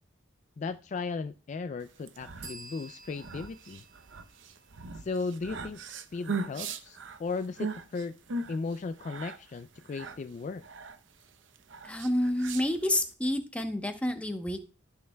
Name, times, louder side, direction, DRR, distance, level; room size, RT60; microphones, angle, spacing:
voice 1, 0.6-3.8 4.9-5.8 6.1-8.2 8.5-10.7, left 4 dB, 40° left, 0.3 m, -36 dB
sound 1, 1.9-13.1, right 3 dB, 75° right, 0.7 m, -40 dB
sound 2, 2.4-6.0, right 3 dB, 60° right, 3.1 m, -51 dB
voice 2, 11.8-14.6, left 1 dB, 5° left, 0.9 m, -29 dB
13.5 x 6.5 x 2.3 m
head